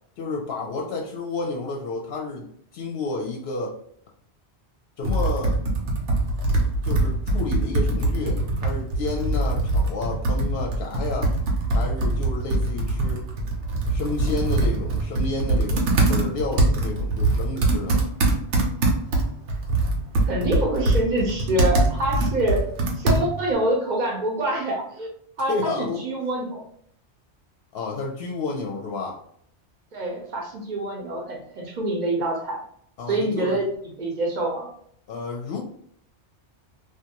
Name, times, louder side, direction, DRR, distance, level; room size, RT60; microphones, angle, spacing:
voice 1, 0.2-2.5 2.7-3.7 5.0-5.6 6.8-11.3 11.7-13.2 13.9-18.0 25.5-26.0 27.7-29.2 33.0-33.6 35.1-35.6, left 3 dB, 65° left, 0 dB, 0.7 m, -30 dB
Computer keyboard, 5.0-23.5, right 2 dB, 90° right, 1.0 m, -23 dB
voice 2, 20.3-22.7 23.0-25.1 25.4-26.6 29.9-32.6 33.1-33.7 34.0-34.7, right 1 dB, 50° right, 0 dB, 0.7 m, -26 dB
2.5 x 2.3 x 2.8 m, 0.65 s
omnidirectional pair, 1.2 m